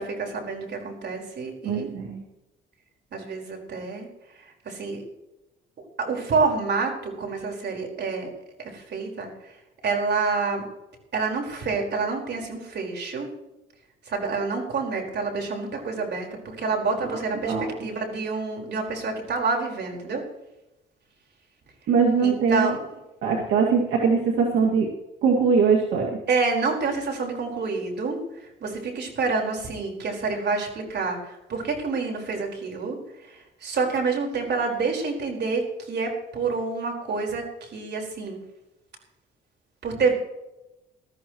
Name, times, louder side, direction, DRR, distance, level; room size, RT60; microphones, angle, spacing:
voice 1, 0.0-1.9 3.1-4.1 4.4-5.0 6.0-8.3 8.6-9.6 9.8-10.6 11.1-13.3 14.0-20.2 22.2-23.0 26.3-33.0 33.2-38.4 39.8-40.1, right 4 dB, 60° right, 1 dB, 4.8 m, -28 dB
voice 2, 1.7-2.2 17.4-17.7 21.9-22.7 23.2-24.9 25.2-26.2, right 5 dB, 80° right, -1 dB, 2.3 m, -21 dB
20.5 x 13.5 x 3.1 m, 0.95 s
cardioid pair, 90°, 20 cm